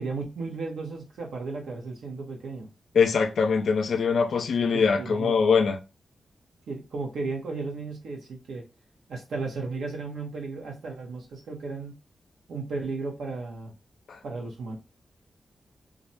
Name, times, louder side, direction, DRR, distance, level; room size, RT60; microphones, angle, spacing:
voice 1, 0.0-2.7 4.7-5.4 6.7-8.7 9.1-12.0 12.5-13.7 14.2-14.8, right 3 dB, 90° right, 0.8 m, -34 dB
voice 2, 2.9-5.8 14.1-14.2, left 5 dB, 75° left, 0.4 m, -23 dB
2.4 x 2.1 x 2.7 m
cardioid pair, 65°, 0 cm